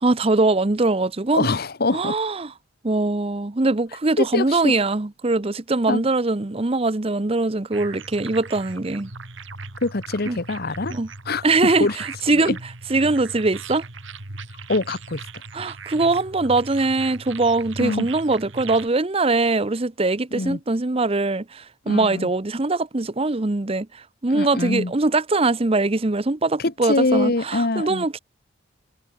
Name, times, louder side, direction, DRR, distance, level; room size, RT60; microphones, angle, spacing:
voice 1, 0.0-1.5 1.9-2.5 2.8-9.1 10.3-10.4 10.9-11.1 11.4-12.5 12.9-13.8 15.5-28.2, right 2 dB, 30° right, 0.7 m, -22 dB
voice 2, 1.3-2.1 4.2-4.7 5.9-6.0 9.8-10.9 11.2-12.0 12.3-12.6 14.7-15.2 17.8-18.1 20.3-20.6 21.9-22.3 24.3-24.9 26.6-28.1, left 2 dB, 50° left, 1.1 m, -24 dB
sound 1, 7.7-18.9, right 3 dB, 70° right, 2.8 m, -38 dB
head